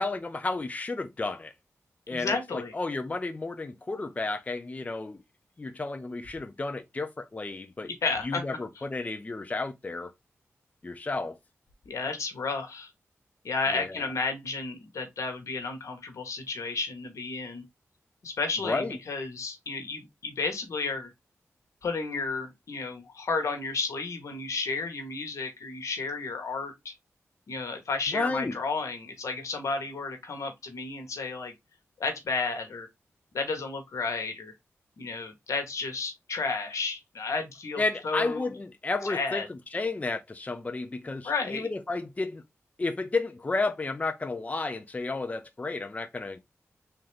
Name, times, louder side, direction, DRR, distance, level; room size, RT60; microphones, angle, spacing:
voice 1, 0.0-1.5 2.1-5.2 5.6-7.9 8.2-10.1 10.8-11.4 13.7-14.0 18.6-19.0 28.1-28.6 37.8-42.4 42.8-46.4, left 3 dB, 30° left, 0.5 m, -32 dB
voice 2, 2.1-2.7 7.8-8.4 11.8-12.9 13.4-17.6 18.2-21.1 21.8-26.9 27.5-31.5 32.0-32.9 33.3-34.5 35.0-38.5 39.0-39.5 41.2-41.7, left 4 dB, 80° left, 1.3 m, -32 dB
3.7 x 2.9 x 3.3 m
cardioid pair, 70°, 5 cm